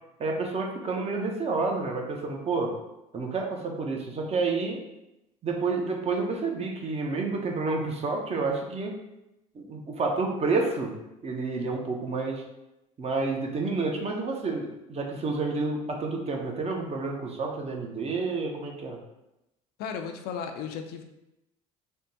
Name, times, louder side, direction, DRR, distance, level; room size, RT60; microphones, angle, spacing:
voice 1, 0.2-2.7 3.1-4.8 5.4-9.0 9.5-10.9 11.2-12.4 13.0-19.0, right 3 dB, 35° right, 1 dB, 0.6 m, -29 dB
voice 2, 19.8-21.0, left 6 dB, 55° left, 6 dB, 0.4 m, -35 dB
3.4 x 2.1 x 2.7 m, 0.91 s
hypercardioid pair, 65°, 19 cm